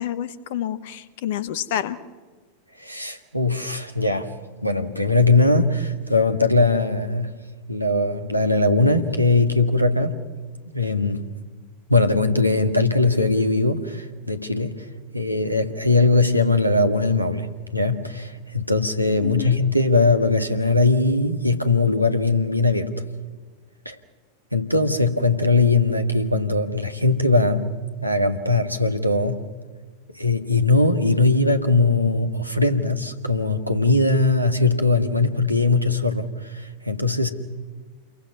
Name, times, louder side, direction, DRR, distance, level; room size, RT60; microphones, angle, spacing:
voice 1, 0.0-2.0 19.2-19.6, left 11 dB, 55° left, 1.2 m, -28 dB
voice 2, 2.8-4.3 4.6-7.3 7.7-10.2 10.7-11.2 11.9-14.8 15.1-23.0 23.8-23.9 24.5-27.7 28.0-29.5 30.1-37.3, left 3 dB, 90° right, 1.7 m, -20 dB
28.5 x 22.5 x 6.1 m
figure-of-eight pair, 90°, 0 cm